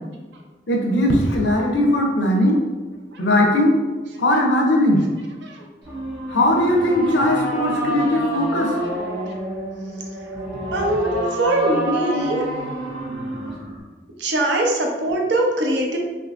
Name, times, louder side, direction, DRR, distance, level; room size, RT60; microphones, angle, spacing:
voice 1, 0.7-2.6 3.2-3.7 4.2-5.0 6.3-8.7 11.0-11.2 12.1-12.4, left 1 dB, 85° left, 0 dB, 0.6 m, -19 dB
sound 1, 5.8-13.8, right 1 dB, 60° right, 1.1 m, -28 dB
voice 2, 10.7-11.1 11.4-12.4 14.2-16.0, right 1 dB, 80° right, 1 dB, 0.6 m, -21 dB
3.7 x 2.8 x 2.5 m, 1.3 s
head